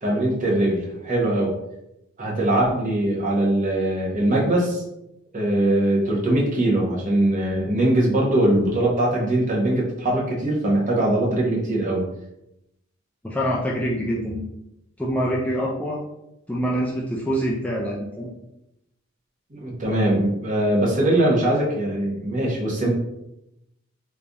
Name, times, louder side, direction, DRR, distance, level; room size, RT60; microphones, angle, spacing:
voice 1, 0.0-1.5 2.2-4.8 5.3-12.1 19.5-22.9, right 1 dB, 40° right, -4 dB, 1.0 m, -21 dB
voice 2, 13.2-14.5 15.0-16.0 16.5-18.3, equal, 5° left, -4 dB, 0.4 m, -25 dB
3.3 x 2.6 x 3.4 m, 0.87 s
head